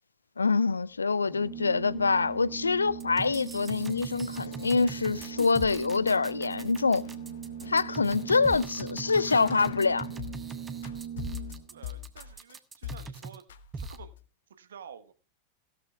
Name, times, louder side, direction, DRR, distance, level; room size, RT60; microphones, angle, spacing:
voice 1, 0.4-7.1 7.7-10.1, left 4 dB, 75° left, 0.5 m, -25 dB
sound 1, 0.8-10.5 10.8-12.5 12.8-13.2 13.5-14.3, left 11 dB, 60° left, 1.1 m, -46 dB
Organ, 1.2-11.9, right 9 dB, 45° right, 1.7 m, -40 dB
sound 2, 3.0-13.4 13.7-14.0, right 4 dB, 15° right, 1.3 m, -42 dB
voice 2, 11.7-13.4 13.7-14.1 14.5-15.1, right 7 dB, 65° right, 1.3 m, -49 dB
16.5 x 12.5 x 2.3 m
figure-of-eight pair, 90°, 0 cm